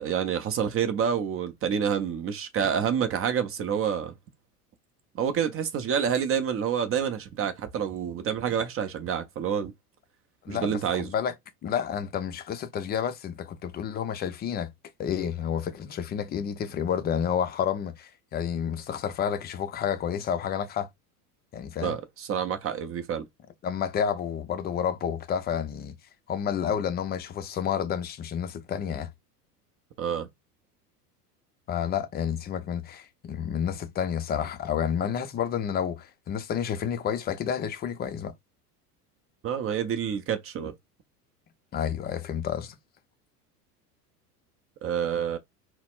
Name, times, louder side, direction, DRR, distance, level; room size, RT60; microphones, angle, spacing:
voice 1, 0.0-4.1 5.1-9.7 10.5-11.1 21.8-23.2 30.0-30.3 39.4-40.7 44.8-45.4, right 8 dB, 30° right, 0.6 m, -28 dB
voice 2, 10.4-11.3 11.6-14.7 15.0-20.9 21.5-22.0 23.6-26.0 26.3-29.1 31.7-38.3 41.7-42.8, left 8 dB, 20° left, 0.4 m, -30 dB
4.0 x 2.0 x 2.3 m
hypercardioid pair, 85°, 47 cm